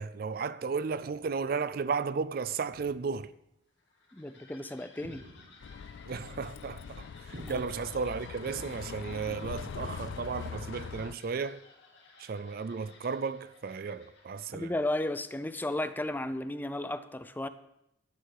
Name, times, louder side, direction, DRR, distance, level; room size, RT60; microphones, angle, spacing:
voice 1, 0.0-3.3 6.1-7.1 7.5-11.6 12.2-14.7, right 5 dB, 50° right, 0.4 m, -34 dB
sound 1, 1.1-1.5 2.7-3.4 5.0-5.9 7.3-8.2, right 1 dB, 80° right, 1.8 m, -51 dB
sound 2, 3.7-16.2, left 4 dB, 70° left, 2.4 m, -57 dB
voice 2, 4.1-5.2 7.5-7.6 14.5-17.5, left 1 dB, 10° left, 0.4 m, -34 dB
Bus, 5.6-11.1, left 6 dB, 85° left, 0.4 m, -42 dB
11.5 x 9.5 x 4.8 m
head